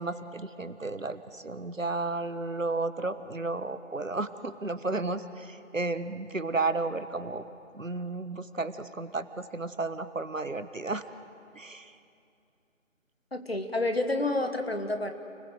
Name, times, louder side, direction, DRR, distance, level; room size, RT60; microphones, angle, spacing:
voice 1, 0.0-7.4 7.7-11.0 11.6-11.9, right 3 dB, 70° right, 11 dB, 1.4 m, -33 dB
voice 2, 13.3-15.1, left 2 dB, 45° left, 6 dB, 1.8 m, -29 dB
29.0 x 20.0 x 8.0 m, 2.6 s
figure-of-eight pair, 170°, 40 cm